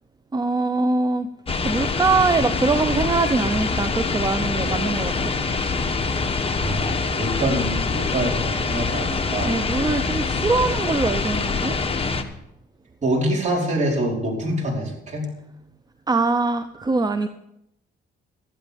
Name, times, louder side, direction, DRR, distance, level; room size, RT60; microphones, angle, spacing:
voice 1, 0.3-1.3 1.6-5.4 9.4-11.8 16.1-17.3, right 3 dB, 20° right, 10 dB, 0.6 m, -23 dB
sound 1, 1.5-12.2, left 4 dB, 30° left, 1.2 m, -25 dB
voice 2, 6.5-9.5 13.0-15.3 16.7-16.8, right 1 dB, 35° right, -2 dB, 4.5 m, -25 dB
12.5 x 10.5 x 5.1 m, 0.79 s
cardioid pair, 90°, 20 cm